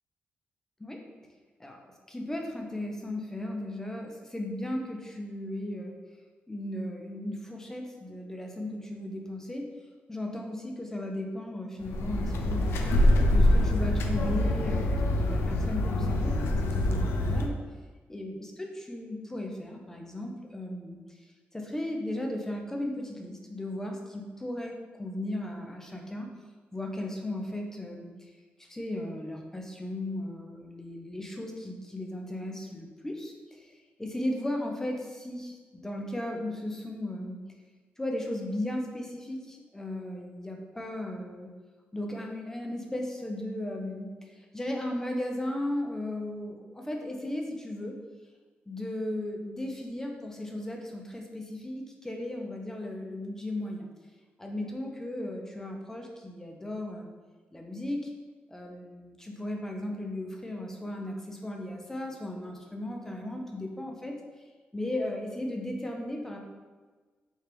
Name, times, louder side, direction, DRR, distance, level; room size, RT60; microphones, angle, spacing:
voice 1, 1.6-5.9 6.5-9.7 10.1-12.8 13.3-17.6 18.1-21.0 21.5-26.3 26.7-28.3 28.6-37.4 38.0-41.5 41.9-48.0 48.7-53.9 54.4-57.1 57.5-58.1 58.5-64.2 64.7-66.4, left 1 dB, 10° left, 1 dB, 0.6 m, -36 dB
sound 1, 11.8-17.5, left 1 dB, 85° left, 0.4 m, -25 dB
4.4 x 2.4 x 3.4 m, 1.4 s
cardioid pair, 110°, 4 cm